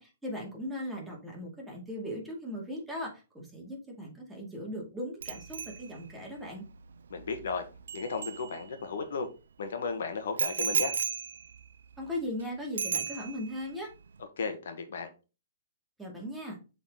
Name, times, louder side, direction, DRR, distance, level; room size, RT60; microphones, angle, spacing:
voice 1, 0.0-6.6 12.0-13.9 16.0-16.6, left 1 dB, 5° right, 2.3 m, -38 dB
Bicycle bell, 5.2-9.0 10.4-12.4 12.8-13.6 13.9-14.2, right 7 dB, 85° right, 0.4 m, -35 dB
voice 2, 7.1-7.6 7.9-9.3 9.6-10.9 14.4-15.1, left 4 dB, 75° left, 1.4 m, -34 dB
7.4 x 4.1 x 3.8 m
hypercardioid pair, 145°, 0 cm